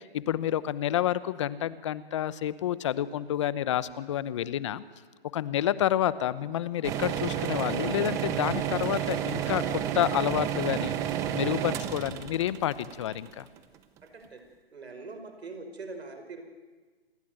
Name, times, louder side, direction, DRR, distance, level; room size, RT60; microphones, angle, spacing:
voice 1, 0.0-4.8 5.3-9.6 9.9-10.9 11.3-13.5, left 11 dB, 30° left, 16 dB, 0.9 m, -29 dB
sound 1, 5.1-5.2 5.4-10.0, left 6 dB, 55° left, 4.3 m, -55 dB
sound 2, 6.8-13.8, right 10 dB, 10° right, 0.7 m, -31 dB
voice 2, 14.7-16.5, right 3 dB, 85° right, 6 dB, 5.5 m, -42 dB
27.5 x 20.5 x 9.3 m, 1.4 s
hypercardioid pair, 160°, 31 cm